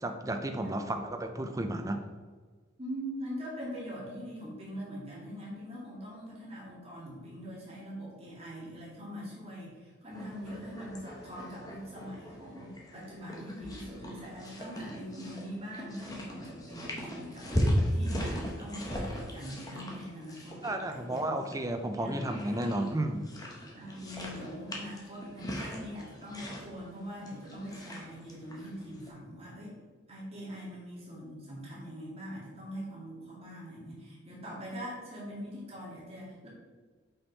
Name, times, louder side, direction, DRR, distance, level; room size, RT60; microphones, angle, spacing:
voice 1, 0.0-2.0 20.6-23.3, right 1 dB, 15° right, 5 dB, 0.5 m, -33 dB
voice 2, 2.8-21.4 21.9-22.3 23.7-29.8 30.1-36.5, equal, 30° right, -6 dB, 2.0 m, -42 dB
sound 1, 10.1-29.1, equal, 20° left, 1.0 m, -38 dB
5.7 x 5.3 x 4.0 m, 1.4 s
head